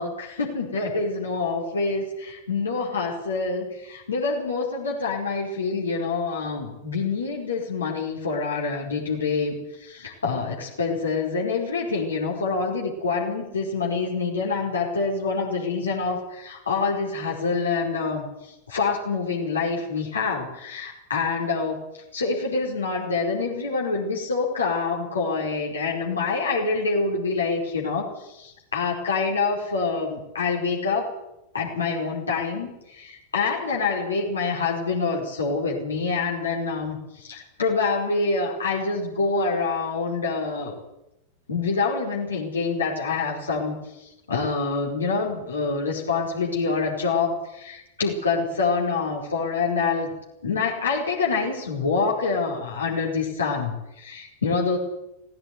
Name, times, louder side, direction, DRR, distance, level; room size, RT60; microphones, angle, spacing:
voice 1, 0.0-18.2 18.7-21.8 22.1-31.1 31.5-40.7 41.5-50.1 50.4-54.8, left 4 dB, 70° left, -1 dB, 5.0 m, -26 dB
17.5 x 16.5 x 9.7 m, 0.87 s
figure-of-eight pair, 90°, 0 cm